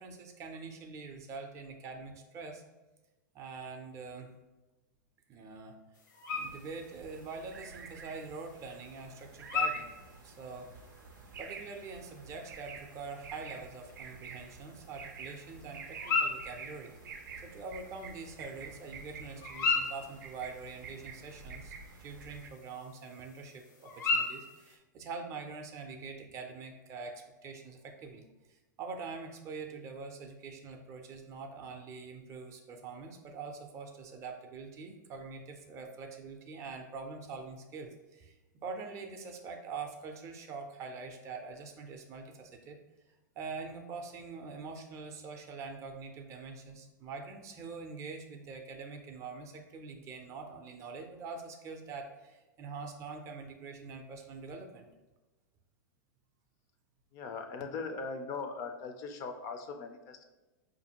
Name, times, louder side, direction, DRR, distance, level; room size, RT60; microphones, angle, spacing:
voice 1, 0.0-2.6 3.3-4.3 5.3-5.8 6.3-9.9 10.2-10.7 11.4-16.9 17.4-38.3 38.6-42.8 43.4-54.9, right 4 dB, 30° right, 4 dB, 0.5 m, -44 dB
sound 1, 5.9-24.8, left 4 dB, 85° left, 0.8 m, -39 dB
sound 2, 6.3-22.5, right 5 dB, 90° right, 0.5 m, -49 dB
voice 2, 57.1-60.2, left 4 dB, 35° left, 6 dB, 0.4 m, -40 dB
4.7 x 2.5 x 2.8 m, 1.1 s
hypercardioid pair, 130°, 10 cm